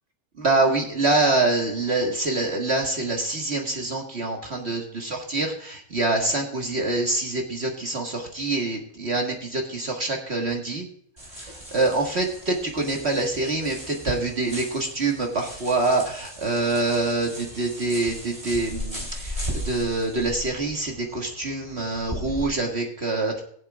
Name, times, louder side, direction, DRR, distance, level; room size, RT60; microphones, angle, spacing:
voice 1, 0.4-10.9 11.4-23.4, right 2 dB, 50° right, 1 dB, 1.7 m, -25 dB
sound 1, 11.2-22.5, equal, 25° right, 3.3 m, -37 dB
22.0 x 7.4 x 2.3 m, 0.63 s
omnidirectional pair, 1.5 m